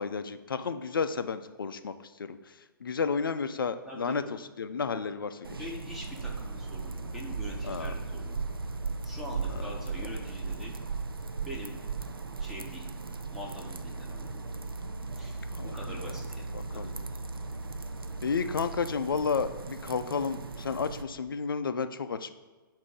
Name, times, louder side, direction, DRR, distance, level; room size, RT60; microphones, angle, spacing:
voice 1, 0.0-1.9 2.2-2.4 2.8-5.6 7.6-7.9 9.5-9.6 15.5-16.0 16.8-16.9 18.2-22.3, left 5 dB, 70° left, 10 dB, 0.4 m, -32 dB
voice 2, 3.9-4.3 4.9-5.0 5.6-8.5 9.0-10.7 11.5-11.8 12.4-12.9 13.3-14.5 15.2-17.0, left 1 dB, 5° right, -2 dB, 1.0 m, -44 dB
sound 1, 5.4-21.0, right 4 dB, 80° right, 0.4 m, -37 dB
7.2 x 2.7 x 5.3 m, 1.3 s
figure-of-eight pair, 125°, 12 cm